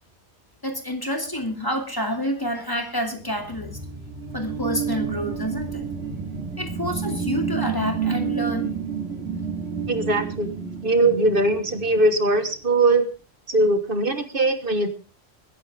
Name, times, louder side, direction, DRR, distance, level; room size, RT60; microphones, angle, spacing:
voice 1, 0.6-3.8 4.3-5.9 6.6-8.8, equal, 20° left, 4 dB, 2.6 m, -28 dB
sound 1, 3.2-12.4, right 6 dB, 85° right, 2.7 m, -30 dB
voice 2, 9.9-10.5 10.8-13.0 13.5-14.9, right 2 dB, 55° right, 9 dB, 1.6 m, -20 dB
21.5 x 10.5 x 3.5 m, 0.34 s
omnidirectional pair, 1.1 m